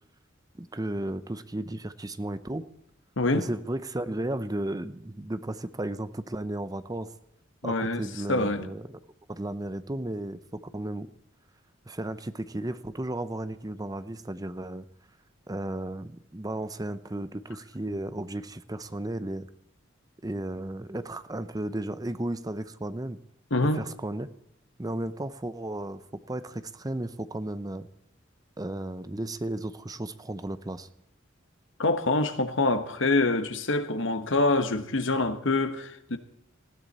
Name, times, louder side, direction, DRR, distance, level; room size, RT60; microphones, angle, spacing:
voice 1, 0.6-2.7 3.3-7.1 7.6-9.0 9.3-11.1 11.9-14.9 15.5-19.5 20.2-23.2 23.7-24.3 24.8-27.9 28.6-30.9, right 1 dB, 20° right, 0.8 m, -34 dB
voice 2, 7.6-8.0 8.3-8.7 23.5-23.8 31.8-36.2, left 2 dB, 70° left, 1.3 m, -25 dB
20.0 x 15.0 x 4.2 m
head